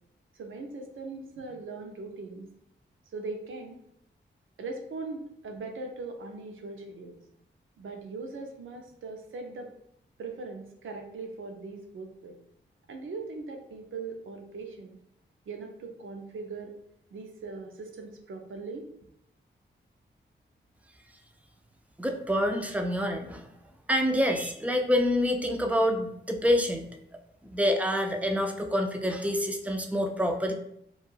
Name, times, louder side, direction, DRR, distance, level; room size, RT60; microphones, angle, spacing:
voice 1, 0.3-2.5 3.1-3.8 4.6-7.2 7.8-9.7 10.2-12.4 12.9-15.0 15.5-16.7 17.1-18.8, right 3 dB, 75° right, 3 dB, 0.5 m, -40 dB
voice 2, 22.0-23.5 23.9-26.9 27.5-30.5, equal, 5° right, 4 dB, 0.4 m, -27 dB
2.3 x 2.1 x 3.1 m, 0.72 s
cardioid pair, 55°, 21 cm